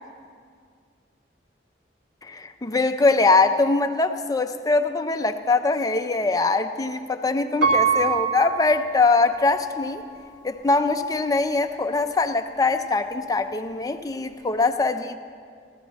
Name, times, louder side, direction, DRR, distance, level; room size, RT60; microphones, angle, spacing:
voice 1, 2.2-10.0 10.4-15.2, left 3 dB, 20° left, 7 dB, 0.6 m, -22 dB
Piano, 7.6-9.6 10.2-10.3, right 5 dB, 85° right, 1.7 m, -24 dB
16.5 x 13.5 x 4.1 m, 2.1 s
head